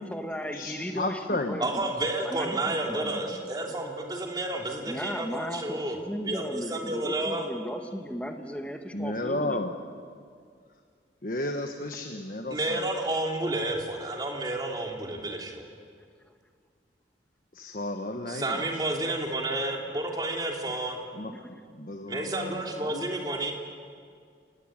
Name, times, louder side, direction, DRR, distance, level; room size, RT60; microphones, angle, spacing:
voice 1, 0.0-1.9 2.2-3.5 4.9-9.6 21.3-21.7, equal, 5° left, 4 dB, 1.7 m, -36 dB
voice 2, 0.5-1.6 8.9-9.7 11.2-12.8 17.5-18.6 21.1-23.0, left 1 dB, 50° left, 4 dB, 1.4 m, -33 dB
voice 3, 1.6-6.0 6.3-7.5 12.5-15.6 18.3-21.0 22.1-23.5, right 2 dB, 25° right, 1 dB, 3.2 m, -31 dB
29.0 x 19.0 x 9.1 m, 2.1 s
head